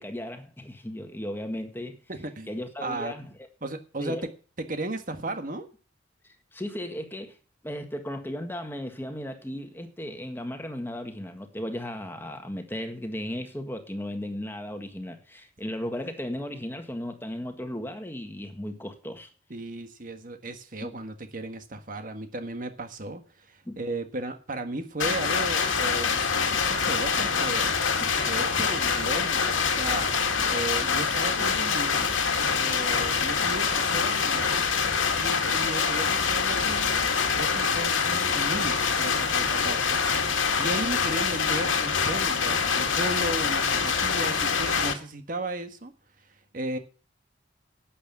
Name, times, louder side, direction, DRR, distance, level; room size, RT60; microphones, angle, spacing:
voice 1, 0.0-2.0 2.5-3.3 4.0-4.3 6.5-7.3 7.6-19.3 20.8-20.9 23.6-23.8 28.0-28.1, left 1 dB, 10° left, 1.7 m, -35 dB
voice 2, 2.1-2.5 2.8-3.1 3.6-5.7 19.5-27.7 28.3-30.1 30.5-32.1 32.6-34.5 35.1-40.3 40.6-46.8, right 2 dB, 45° right, 1.5 m, -35 dB
sound 1, 25.0-44.9, left 5 dB, 85° left, 2.1 m, -25 dB
11.5 x 8.7 x 7.2 m
head